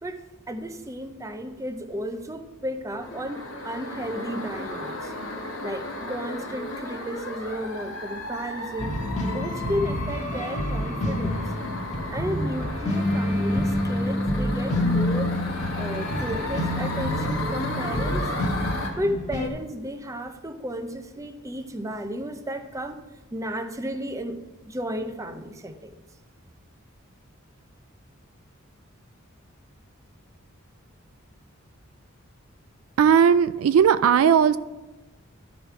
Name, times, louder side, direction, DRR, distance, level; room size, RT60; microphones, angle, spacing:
voice 1, 0.0-5.1 5.6-9.0 9.3-11.4 12.1-15.3 15.7-18.3 19.0-23.0 23.3-24.4 24.7-26.0, equal, 15° right, 7 dB, 0.6 m, -33 dB
sound 1, 3.0-18.9, left 2 dB, 75° left, 1.5 m, -34 dB
sound 2, 8.8-19.5, left 1 dB, 35° left, 1.4 m, -27 dB
voice 2, 33.0-34.6, right 7 dB, 75° right, 13 dB, 0.3 m, -17 dB
12.5 x 5.2 x 4.5 m, 1.1 s
head